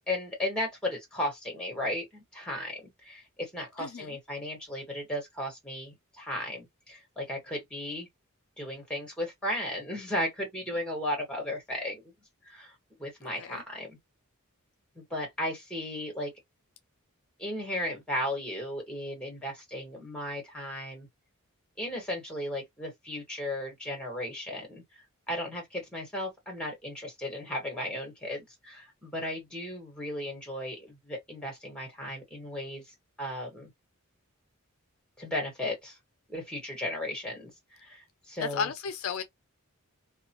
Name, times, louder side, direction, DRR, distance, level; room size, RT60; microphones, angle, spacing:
voice 1, 0.1-8.1 8.6-12.0 12.5-12.7 13.0-14.0 14.9-16.3 17.4-21.1 21.8-24.8 25.3-32.8 33.2-33.7 35.2-36.0 36.3-37.5 37.8-38.7, left 1 dB, 5° left, 1.3 m, -35 dB
voice 2, 3.8-4.2 13.4-13.6 38.4-39.2, left 6 dB, 65° left, 0.4 m, -33 dB
2.4 x 2.1 x 2.8 m
head